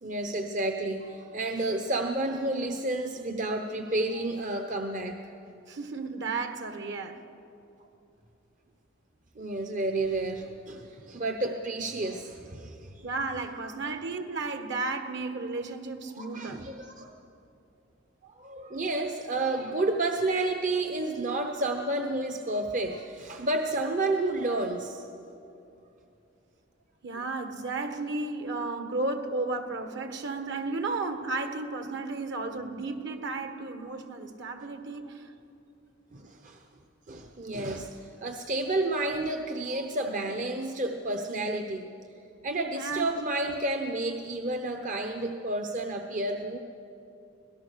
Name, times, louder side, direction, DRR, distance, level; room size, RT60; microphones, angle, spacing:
voice 1, 0.0-5.2 9.4-13.0 13.7-13.8 16.2-17.1 18.4-25.1 36.1-36.6 37.1-37.9 38.2-41.9 42.4-46.6, right 2 dB, 40° right, 4 dB, 0.9 m, -30 dB
voice 2, 5.7-7.2 13.0-16.6 27.0-35.2 42.8-43.1, right 3 dB, 60° right, 7 dB, 1.6 m, -33 dB
25.0 x 18.0 x 6.5 m, 2.7 s
head